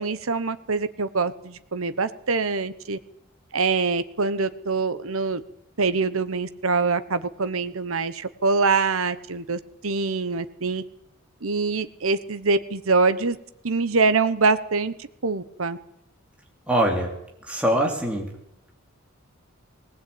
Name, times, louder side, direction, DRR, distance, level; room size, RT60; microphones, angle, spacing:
voice 1, 0.0-3.0 3.5-5.4 5.8-10.8 11.4-13.4 13.6-14.9 15.2-15.8, right 4 dB, 80° right, 12 dB, 1.1 m, -24 dB
voice 2, 16.7-17.1 17.5-18.3, right 1 dB, 5° right, -1 dB, 3.3 m, -23 dB
19.0 x 18.5 x 8.7 m, 0.77 s
head